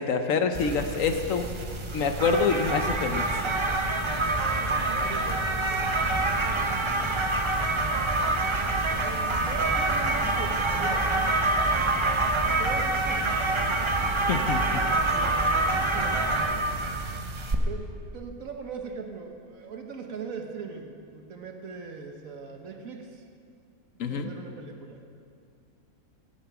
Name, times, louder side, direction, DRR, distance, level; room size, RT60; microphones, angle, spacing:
voice 1, 0.0-1.5 1.9-3.3 14.3-14.8 24.0-24.3, left 5 dB, 65° left, 7 dB, 1.0 m, -26 dB
sound 1, 0.5-17.5, right 2 dB, 35° right, 0.4 m, -26 dB
voice 2, 4.6-6.9 8.8-11.1 11.9-12.0 12.6-13.4 14.7-16.3 17.7-23.2 24.1-25.0, right 5 dB, 65° right, 4 dB, 1.4 m, -40 dB
17.0 x 7.2 x 6.0 m, 2.4 s
omnidirectional pair, 1.6 m